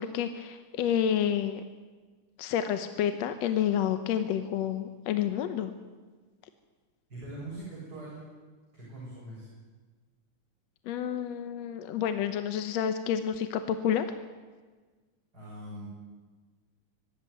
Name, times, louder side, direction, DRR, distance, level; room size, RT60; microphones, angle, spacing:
voice 1, 0.0-1.6 2.4-5.7 10.9-14.1, left 9 dB, 70° left, 9 dB, 1.9 m, -29 dB
voice 2, 7.1-8.2 8.7-9.5 15.3-15.9, right 1 dB, 30° right, -7 dB, 7.6 m, -42 dB
23.5 x 13.0 x 9.5 m, 1.4 s
omnidirectional pair, 3.5 m